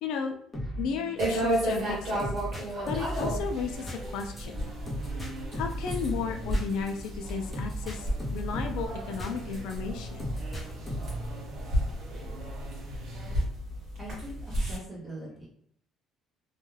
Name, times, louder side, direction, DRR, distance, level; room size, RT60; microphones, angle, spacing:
voice 1, 0.0-0.3 0.8-2.3 2.9-4.7 5.5-10.3, left 6 dB, 75° left, 4 dB, 0.3 m, -34 dB
sound 1, 0.5-9.8 10.2-11.3, equal, 10° left, 0.6 m, -37 dB
sound 2, 1.2-14.8, right 1 dB, 40° right, 1.2 m, -33 dB
sound 3, 3.2-13.4, equal, 80° right, 0.7 m, -42 dB
voice 2, 14.0-15.5, right 1 dB, 10° right, -5 dB, 0.9 m, -42 dB
2.3 x 2.3 x 3.1 m, 0.65 s
cardioid pair, 175°, 0 cm